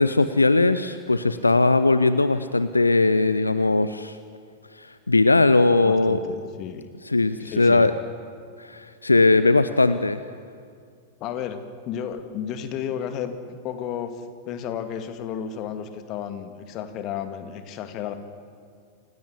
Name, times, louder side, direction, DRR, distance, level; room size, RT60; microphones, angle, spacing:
voice 1, 0.0-4.2 4.8-6.2 7.1-7.9 8.6-10.2, left 3 dB, 80° left, 13 dB, 0.7 m, -19 dB
voice 2, 5.8-6.9 7.4-7.9 11.2-11.6 11.9-18.1, left 8 dB, 40° left, 8 dB, 2.2 m, -32 dB
28.0 x 16.5 x 8.6 m, 2.1 s
figure-of-eight pair, 90°, 0 cm